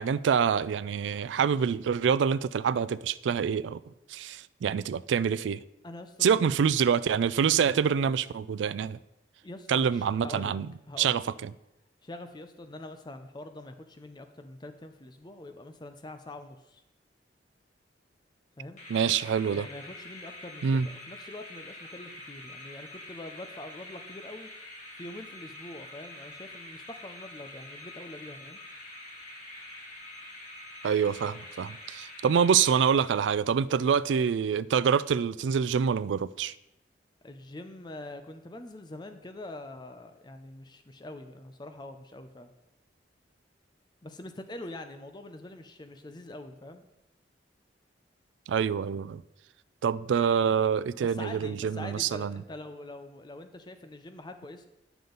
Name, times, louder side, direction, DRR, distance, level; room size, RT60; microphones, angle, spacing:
voice 1, 0.0-3.8 4.1-5.6 6.2-9.0 9.7-10.7 11.0-11.5 18.9-19.7 20.6-20.9 30.8-36.5 48.5-49.2 49.8-52.4, right 7 dB, 90° right, 0.3 m, -26 dB
voice 2, 5.8-6.4 9.4-10.6 10.9-11.3 12.0-16.8 18.6-18.8 19.5-24.5 25.0-28.6 37.2-42.5 44.0-46.9 51.0-54.7, left 2 dB, 25° left, 0.5 m, -44 dB
sound 1, 18.8-33.4, left 1 dB, 40° left, 2.0 m, -46 dB
9.5 x 6.9 x 3.9 m
head